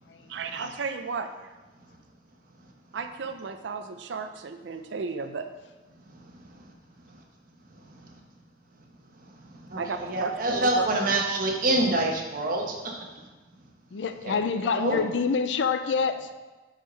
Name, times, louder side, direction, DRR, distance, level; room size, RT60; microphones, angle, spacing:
voice 1, 0.3-1.5 2.9-5.5 9.8-10.8, right 4 dB, 85° right, 8 dB, 0.5 m, -33 dB
voice 2, 9.7-12.9 14.3-15.0, right 2 dB, 50° right, 1 dB, 1.0 m, -26 dB
voice 3, 13.9-16.3, left 5 dB, 80° left, 10 dB, 0.4 m, -26 dB
4.8 x 4.5 x 5.5 m, 1.2 s
head